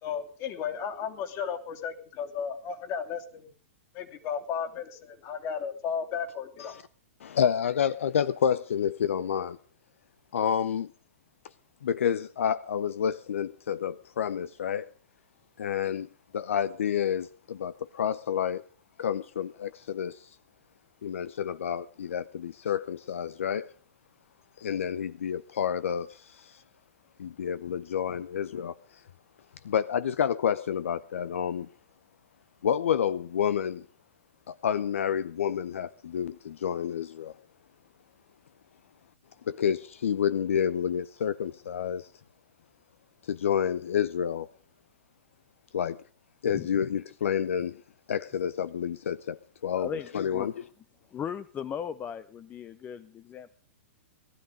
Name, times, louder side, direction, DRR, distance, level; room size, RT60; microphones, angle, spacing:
voice 1, 0.0-3.5 3.9-6.8, left 7 dB, 40° left, 3.0 m, -34 dB
voice 2, 7.2-9.6 10.3-10.9 11.8-14.9 15.6-16.1 16.3-18.6 19.0-20.4 21.0-23.7 24.6-26.6 27.2-29.0 29.6-31.7 32.6-33.8 34.5-37.3 39.5-42.1 43.2-44.5 45.7-46.0 46.4-47.8 48.1-49.9 50.1-50.5, left 8 dB, 70° left, 0.6 m, -29 dB
voice 3, 49.8-50.5 51.1-53.5, left 8 dB, 25° left, 0.8 m, -37 dB
18.5 x 13.0 x 5.1 m
figure-of-eight pair, 110°, 7 cm